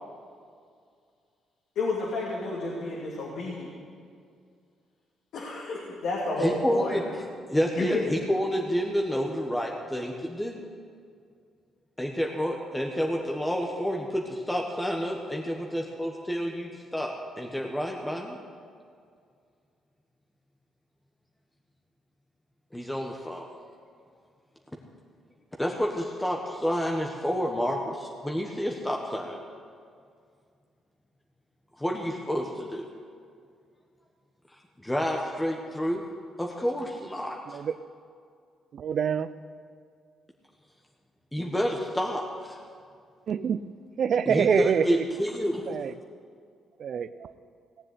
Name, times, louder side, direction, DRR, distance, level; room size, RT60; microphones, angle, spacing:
voice 1, 1.8-3.7 5.3-6.9 7.8-8.1, left 2 dB, 75° left, -4 dB, 2.8 m, -31 dB
voice 2, 6.4-10.6 12.0-18.4 22.7-23.5 25.6-29.4 31.8-32.9 34.8-36.1 36.4-37.6 41.3-42.6 44.3-45.8, equal, 10° left, 0 dB, 1.4 m, -29 dB
voice 3, 38.7-39.3 43.3-43.6 44.0-45.0 45.7-45.9 46.8-47.3, right 7 dB, 60° right, 14 dB, 0.6 m, -26 dB
18.0 x 7.6 x 9.7 m, 2.2 s
cardioid pair, 90°, 0 cm